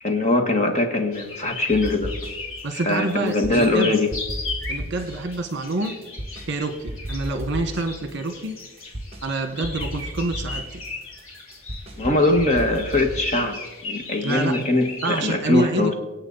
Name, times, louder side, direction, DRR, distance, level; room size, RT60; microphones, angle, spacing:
voice 1, 0.0-2.1 2.7-4.1 12.0-15.9, left 2 dB, 30° left, 4 dB, 1.5 m, -22 dB
sound 1, 1.1-15.3, left 3 dB, 65° left, 2.7 m, -37 dB
sound 2, 1.7-2.6 2.9-3.8 4.1-6.5 6.9-9.3 9.6-13.3, equal, 25° right, 2.1 m, -34 dB
voice 2, 2.6-3.9 4.7-6.0 6.5-8.5 9.2-10.8 14.2-14.7 15.0-15.9, right 2 dB, 55° right, 7 dB, 1.4 m, -27 dB
25.0 x 8.3 x 4.1 m, 1.1 s
head